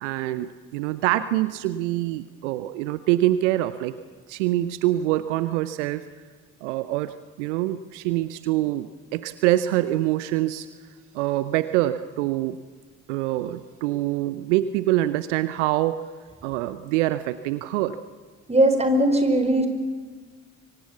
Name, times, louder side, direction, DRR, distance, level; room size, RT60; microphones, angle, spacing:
voice 1, 0.0-3.9 4.3-6.0 6.6-10.7 11.1-12.6 13.1-16.0 16.4-18.0, right 15 dB, 75° right, 14 dB, 0.8 m, -25 dB
voice 2, 18.5-19.7, right 1 dB, 15° right, 7 dB, 4.8 m, -19 dB
25.5 x 24.5 x 7.2 m, 1.5 s
figure-of-eight pair, 45°, 36 cm